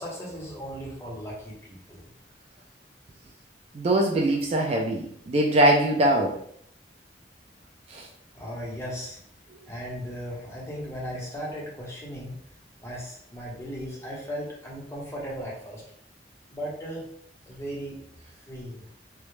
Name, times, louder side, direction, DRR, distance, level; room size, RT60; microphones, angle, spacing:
voice 1, 0.0-2.0 8.3-9.2 9.7-12.4 12.8-15.8 16.5-17.0 17.5-18.0 18.5-18.8, equal, 15° left, -5 dB, 0.7 m, -36 dB
voice 2, 3.7-6.4 7.9-8.1, right 1 dB, 35° right, 0 dB, 0.3 m, -22 dB
2.2 x 2.0 x 3.0 m, 0.65 s
head